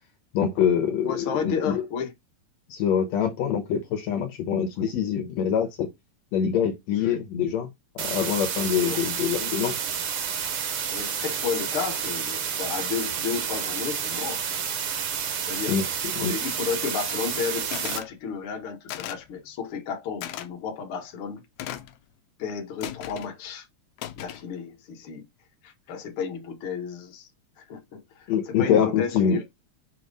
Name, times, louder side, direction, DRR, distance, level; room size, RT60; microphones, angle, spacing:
voice 1, 0.3-1.8 2.7-5.9 6.3-7.7 8.0-9.8 15.7-15.9 16.2-16.3 28.3-29.4, left 8 dB, 70° left, 2.1 m, -25 dB
voice 2, 1.0-2.1 4.8-4.9 7.0-7.2 8.9-9.0 9.3-9.5 10.9-14.4 15.1-15.2 15.5-15.8 16.2-21.4 22.4-23.7 24.2-25.3 25.6-27.3 27.6-29.4, left 6 dB, 55° left, 1.9 m, -32 dB
sound 1, 8.0-18.0, right 7 dB, 60° right, 1.6 m, -30 dB
sound 2, 17.7-18.1 18.9-19.3 20.2-20.5 21.6-22.0 22.8-23.3 24.0-24.5, left 12 dB, 90° left, 2.0 m, -36 dB
6.2 x 3.1 x 5.3 m
omnidirectional pair, 3.3 m